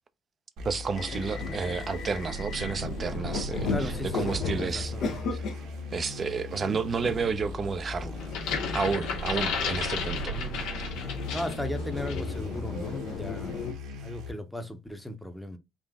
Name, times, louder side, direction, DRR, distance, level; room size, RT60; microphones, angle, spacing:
voice 1, 0.6-5.4 5.9-8.2 8.7-10.4, right 5 dB, 30° right, 0.5 m, -31 dB
sound 1, 0.6-14.3, left 1 dB, 70° right, 1.3 m, -39 dB
sound 2, 1.0-13.7, left 4 dB, 65° left, 0.8 m, -36 dB
voice 2, 3.7-5.1 10.3-10.5 11.3-13.7 14.0-15.6, left 1 dB, 5° left, 0.8 m, -37 dB
sound 3, 8.2-11.7 12.1-12.3, left 6 dB, 90° left, 1.4 m, -33 dB
3.8 x 2.5 x 3.5 m
cardioid pair, 125°, 0 cm